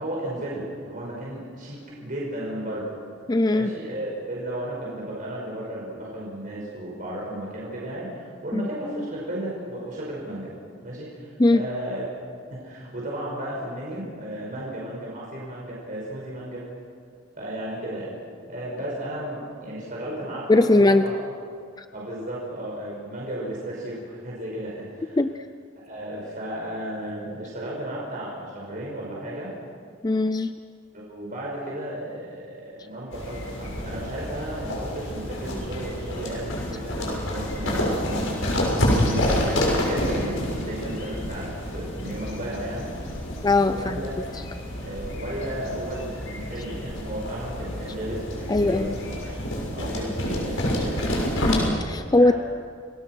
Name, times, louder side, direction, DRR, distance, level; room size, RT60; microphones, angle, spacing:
voice 1, 0.0-2.9 3.5-10.5 10.8-12.1 12.5-16.6 17.4-18.1 18.5-21.1 21.9-25.2 25.8-29.5 30.9-38.4 39.0-42.9 43.7-44.1 44.7-49.4 49.7-51.0 52.0-52.3, right 1 dB, 40° right, -4 dB, 5.5 m, -34 dB
voice 2, 3.3-3.7 8.5-8.7 11.4-11.6 20.5-21.1 21.8-21.9 25.2-25.3 30.0-30.5 43.4-44.1 48.5-48.9 51.4-52.3, left 2 dB, 20° left, 10 dB, 0.5 m, -20 dB
sound 1, 33.1-51.7, left 1 dB, 70° left, 6.4 m, -28 dB
30.0 x 20.0 x 6.2 m, 2.2 s
head